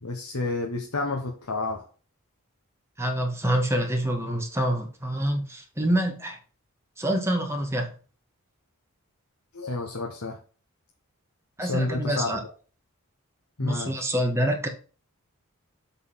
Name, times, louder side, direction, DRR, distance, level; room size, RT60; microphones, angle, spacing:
voice 1, 0.0-1.9 9.5-10.4 11.6-12.4 13.6-14.1, left 2 dB, 80° left, 1.2 m, -30 dB
voice 2, 3.0-6.4 7.0-7.9 11.6-12.4 13.6-14.7, right 1 dB, 10° right, 1.8 m, -26 dB
7.9 x 4.1 x 5.7 m
head